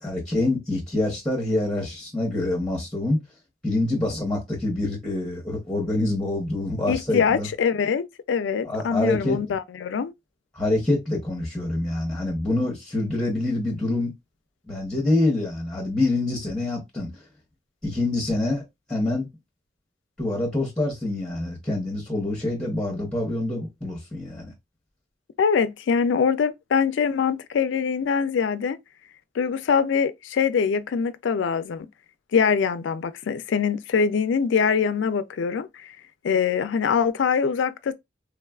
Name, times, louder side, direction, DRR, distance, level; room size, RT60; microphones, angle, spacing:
voice 1, 0.0-3.2 3.6-7.5 8.6-9.4 10.5-14.1 14.7-17.1 17.8-18.6 18.9-19.3 20.2-24.5, left 2 dB, 5° left, 0.8 m, -26 dB
voice 2, 6.9-10.1 25.4-28.8 29.4-31.9 32.3-35.9 36.2-37.9, left 6 dB, 70° left, 0.3 m, -23 dB
3.4 x 2.3 x 2.3 m
head